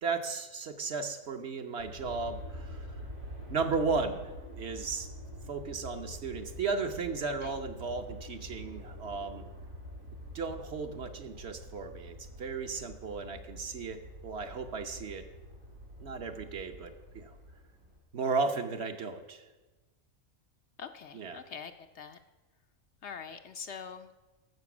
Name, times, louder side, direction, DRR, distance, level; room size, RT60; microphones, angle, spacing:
voice 1, 0.0-2.9 3.5-4.2 4.5-5.1 5.5-9.4 10.3-15.2 16.0-17.3 18.1-19.4 21.1-21.4, right 4 dB, 55° right, 6 dB, 1.0 m, -35 dB
Aircraft, 1.8-18.0, equal, 75° right, 4.4 m, -46 dB
voice 2, 20.8-22.2 23.0-24.1, left 6 dB, 65° left, 8 dB, 0.8 m, -44 dB
14.5 x 6.6 x 6.0 m, 1.2 s
omnidirectional pair, 1.4 m